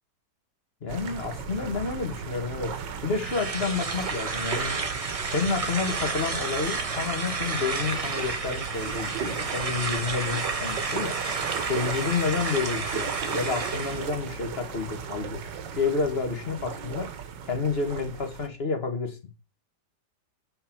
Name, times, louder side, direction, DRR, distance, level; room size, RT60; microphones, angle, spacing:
voice 1, 0.8-2.7 3.0-4.8 5.3-11.2 11.7-15.4 15.8-17.1 17.5-19.2, left 4 dB, 35° left, 1.6 m, -29 dB
sound 1, 0.9-18.5, right 7 dB, 80° right, 1.6 m, -36 dB
sound 2, 3.1-14.1, right 4 dB, 35° right, 0.5 m, -32 dB
7.5 x 4.7 x 5.9 m
omnidirectional pair, 1.9 m